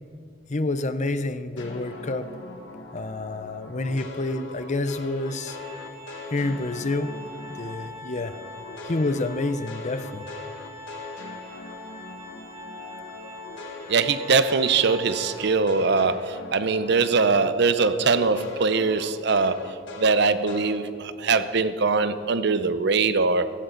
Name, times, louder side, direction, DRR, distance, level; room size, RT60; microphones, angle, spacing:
voice 1, 0.5-2.3 2.9-5.6 6.3-7.1 7.6-8.3 8.8-10.3, left 2 dB, 40° left, 11 dB, 0.7 m, -28 dB
sound 1, 1.6-7.9 8.2-17.5 17.8-20.8, left 3 dB, 80° left, 1.8 m, -41 dB
Organ, 5.2-15.9, left 2 dB, 40° right, 2.3 m, -43 dB
voice 2, 13.9-23.5, right 4 dB, 65° right, 12 dB, 0.7 m, -22 dB
17.0 x 16.5 x 4.0 m, 2.3 s
head